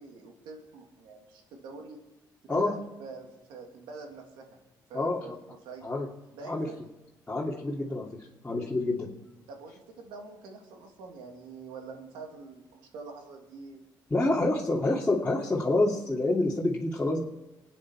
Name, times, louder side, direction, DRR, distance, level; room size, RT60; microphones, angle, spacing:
voice 1, 0.0-2.0 2.5-4.6 4.9-5.8 6.3-6.8 9.5-13.8 14.5-14.6, right 4 dB, 90° right, 3 dB, 2.8 m, -45 dB
voice 2, 4.9-5.4 5.8-6.1 6.4-6.7 7.3-8.1 8.4-9.1 14.1-17.3, left 2 dB, 15° left, -6 dB, 2.8 m, -27 dB
24.5 x 9.5 x 4.8 m, 1.0 s
cardioid pair, 80°, 8 cm